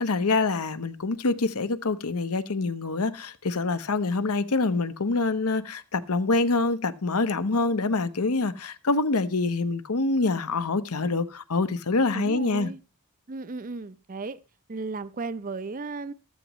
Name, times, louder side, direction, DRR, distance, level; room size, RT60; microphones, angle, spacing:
voice 1, 0.0-12.7, left 3 dB, 80° left, 1.0 m, -26 dB
voice 2, 12.1-12.8 13.3-14.4 14.7-16.1, right 3 dB, 40° right, 0.6 m, -35 dB
14.5 x 13.5 x 3.1 m
head